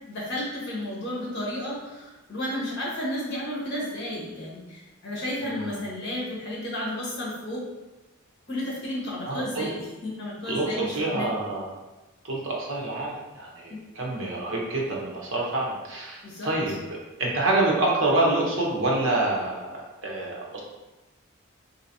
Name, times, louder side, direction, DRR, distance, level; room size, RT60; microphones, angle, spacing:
voice 1, 0.1-7.6 8.5-11.3 13.7-13.8 16.2-16.8, left 1 dB, 55° left, -6 dB, 1.1 m, -32 dB
voice 2, 5.4-5.8 9.2-9.7 10.5-11.7 12.2-16.7 17.2-20.6, right 2 dB, 65° right, -2 dB, 0.7 m, -27 dB
3.3 x 2.7 x 2.7 m, 1.1 s
head